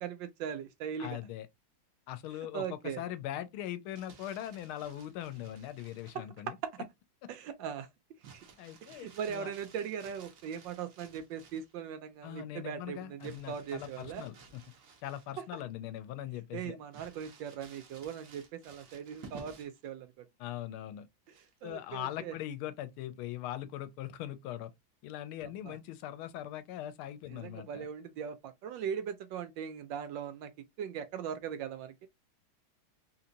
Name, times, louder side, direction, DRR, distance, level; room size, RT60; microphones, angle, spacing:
voice 1, 0.0-1.2 2.5-3.0 6.1-6.5 7.3-7.9 8.3-8.4 8.8-14.2 15.4-15.5 16.5-20.3 21.6-22.3 25.6-25.8 27.3-30.5 30.8-32.1, right 8 dB, 75° right, 1.1 m, -40 dB
voice 2, 1.0-1.5 2.1-2.7 3.0-6.6 8.6-9.5 12.2-14.3 15.0-16.8 20.4-21.1 21.6-24.7 25.0-27.9, left 12 dB, 85° left, 1.5 m, -41 dB
Crumpling crinkling, 3.7-6.3 8.2-11.8 13.2-15.6 16.0-16.1 16.9-19.9 21.3-21.7, right 5 dB, 55° right, 1.0 m, -55 dB
3.8 x 2.9 x 2.6 m
omnidirectional pair, 2.3 m